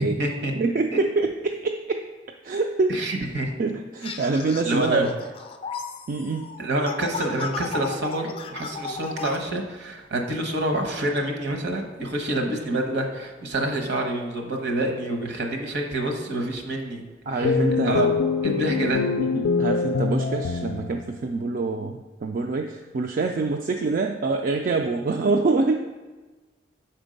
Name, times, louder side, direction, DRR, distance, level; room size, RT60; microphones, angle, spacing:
voice 1, 0.0-0.5 2.9-3.5 4.6-5.1 6.6-17.0 17.3-18.1 18.4-19.1, right 1 dB, 65° right, 2 dB, 1.0 m, -27 dB
voice 2, 0.6-2.1 2.4-2.9 3.6-5.1 6.1-6.5 17.3-18.1 19.2-25.7, right 3 dB, 50° right, 3 dB, 0.4 m, -25 dB
sound 1, 4.0-9.4, left 5 dB, 30° left, 0.5 m, -35 dB
sound 2, 17.4-21.1, left 4 dB, 90° left, 0.4 m, -24 dB
6.0 x 4.4 x 5.1 m, 1.3 s
head